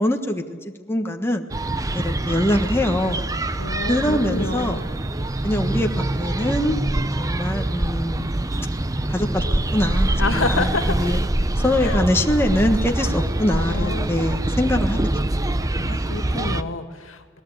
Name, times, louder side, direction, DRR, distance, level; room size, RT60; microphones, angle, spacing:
voice 1, 0.0-1.5 1.9-3.2 3.9-4.8 5.4-6.8 7.2-8.5 9.1-11.2 11.6-15.3, left 1 dB, 10° left, 3 dB, 1.3 m, -23 dB
sound 1, 1.5-16.6, right 1 dB, 15° right, 0.7 m, -24 dB
voice 2, 3.6-4.8 10.2-11.0 11.8-12.0 13.5-14.1 15.7-17.4, left 3 dB, 85° left, 7 dB, 2.1 m, -28 dB
27.5 x 19.5 x 8.4 m, 1.5 s
head